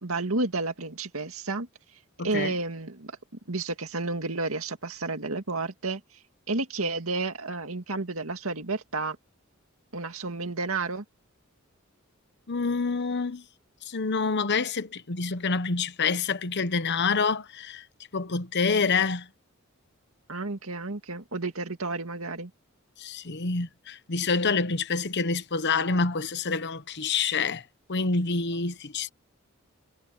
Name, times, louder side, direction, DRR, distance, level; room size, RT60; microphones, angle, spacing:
voice 1, 0.0-1.7 2.2-3.1 3.5-6.0 6.5-9.2 9.9-11.0 20.3-22.5, right 3 dB, 80° right, 2.3 m, -31 dB
voice 2, 2.2-2.5 12.5-13.4 13.9-17.8 18.1-19.3 23.0-27.6 27.9-29.1, left 4 dB, 55° left, 1.1 m, -27 dB
head